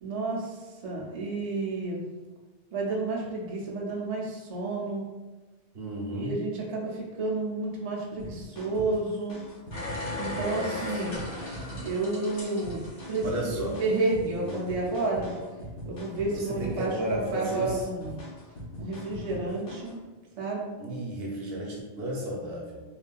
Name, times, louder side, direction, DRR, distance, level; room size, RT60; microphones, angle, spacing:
voice 1, 0.0-2.0 2.7-5.0 6.1-9.4 10.2-11.2 11.4-15.4 15.9-18.1 18.8-20.0 20.4-20.7, right 2 dB, 45° right, -4 dB, 0.5 m, -31 dB
voice 2, 5.7-6.4 10.3-11.2 13.2-13.8 14.4-14.6 16.3-17.8 20.8-22.8, right 1 dB, 65° right, -2 dB, 0.9 m, -34 dB
sound 1, 8.2-20.0, left 1 dB, 60° left, 0.9 m, -41 dB
sound 2, 9.7-14.1 14.5-14.6, left 1 dB, 85° left, 1.6 m, -37 dB
3.1 x 2.6 x 2.2 m, 1.2 s
omnidirectional pair, 1.2 m